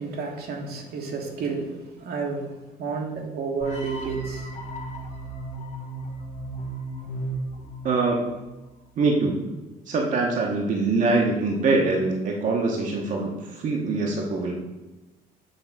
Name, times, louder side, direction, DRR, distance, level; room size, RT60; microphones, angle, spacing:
voice 1, 0.0-4.5, right 4 dB, 65° right, 2 dB, 1.2 m, -31 dB
sound 1, 3.6-8.7, right 2 dB, 45° left, 1.1 m, -35 dB
voice 2, 7.8-8.3 9.0-9.4 9.9-14.6, right 3 dB, 50° right, 0 dB, 1.0 m, -24 dB
6.6 x 3.0 x 5.9 m, 1.1 s
cardioid pair, 110°, 17 cm